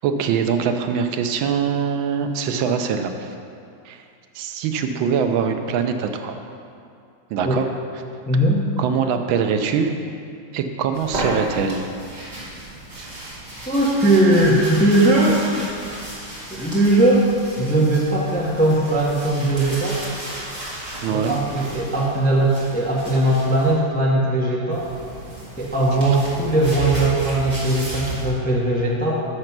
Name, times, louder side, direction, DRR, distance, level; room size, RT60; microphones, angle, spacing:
voice 1, 0.0-3.3 3.9-4.0 4.3-6.4 7.3-7.7 8.8-10.0 10.5-11.8 13.0-13.1 21.0-21.4, right 6 dB, 85° right, 6 dB, 1.4 m, -23 dB
voice 2, 8.3-8.6 13.7-15.4 16.5-17.3 17.6-20.0 21.1-24.9 25.6-29.3, right 1 dB, 10° left, -4 dB, 0.5 m, -19 dB
sound 1, 10.9-23.7 24.7-28.3, right 2 dB, 20° right, 2.3 m, -33 dB
6.7 x 6.5 x 5.9 m, 2.4 s
omnidirectional pair, 2.1 m